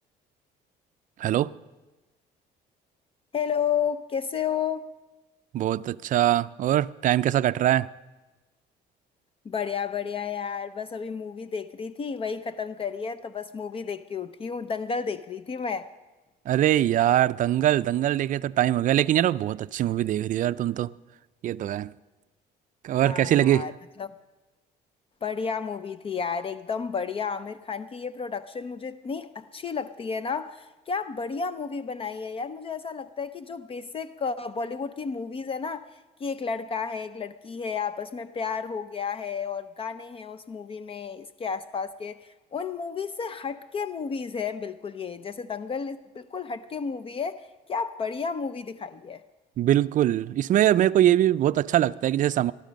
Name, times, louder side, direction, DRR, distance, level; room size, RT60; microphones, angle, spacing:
voice 1, 1.2-1.5 5.5-7.9 16.5-20.9 21.4-21.9 22.8-23.7 49.6-52.5, right 12 dB, 50° right, 0.4 m, -22 dB
voice 2, 3.3-4.9 9.4-15.9 23.0-23.7 24.0-24.1 25.2-49.2, left 6 dB, 35° left, 0.5 m, -32 dB
18.5 x 12.5 x 5.2 m
cardioid pair, 110°, 17 cm